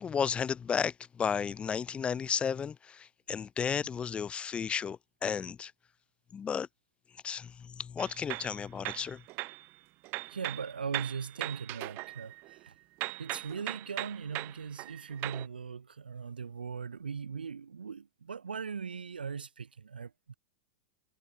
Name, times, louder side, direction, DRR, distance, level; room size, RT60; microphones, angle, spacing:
voice 1, 0.0-5.7 6.3-6.7 7.2-7.5 7.8-9.2, left 7 dB, 20° left, 1.0 m, -33 dB
sound 1, 8.0-9.7 10.0-12.7 13.0-15.5, right 22 dB, 45° right, 2.3 m, -39 dB
voice 2, 10.3-12.8 13.2-20.3, right 6 dB, 80° right, 3.6 m, -39 dB
figure-of-eight pair, 90°, 5 cm